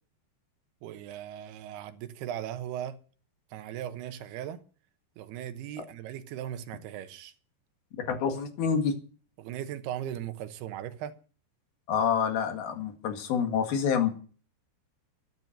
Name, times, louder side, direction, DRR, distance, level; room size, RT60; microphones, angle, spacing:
voice 1, 0.8-3.0 3.5-4.6 5.2-7.3 9.4-11.2, right 11 dB, 85° right, 3.1 m, -38 dB
voice 2, 8.1-8.9 11.9-14.1, left 7 dB, 70° left, 3.8 m, -27 dB
12.5 x 12.0 x 6.7 m
omnidirectional pair, 4.5 m